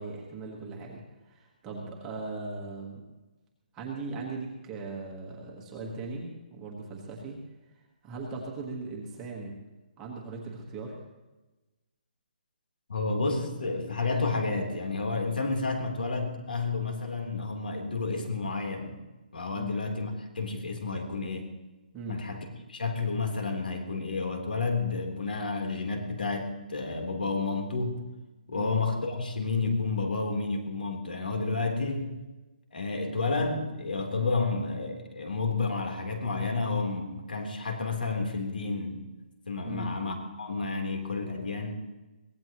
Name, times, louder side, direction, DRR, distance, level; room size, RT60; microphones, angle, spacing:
voice 1, 0.0-3.0 3.7-7.4 8.0-9.6 10.0-11.0 19.5-19.8 21.9-22.2 28.5-28.7 39.6-39.9, right 3 dB, 10° right, -2 dB, 1.3 m, -39 dB
voice 2, 12.9-19.0 19.3-21.5 22.1-28.0 28.5-32.1 32.7-39.0 39.5-41.9, left 3 dB, 80° left, 3 dB, 3.6 m, -31 dB
23.5 x 17.5 x 3.0 m, 1.1 s
hypercardioid pair, 180°, 5 cm